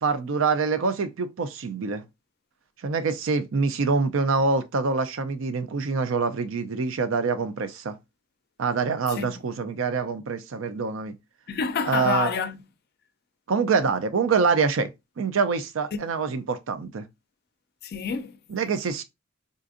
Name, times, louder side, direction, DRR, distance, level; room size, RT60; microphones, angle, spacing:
voice 1, 0.0-2.0 2.8-8.0 8.6-11.2 11.9-12.3 13.5-14.9 15.2-17.1 18.5-19.0, right 4 dB, 70° right, 0.5 m, -25 dB
voice 2, 9.1-9.4 11.5-12.6 17.8-18.4, left 5 dB, 50° left, 0.4 m, -28 dB
3.8 x 2.5 x 2.4 m
head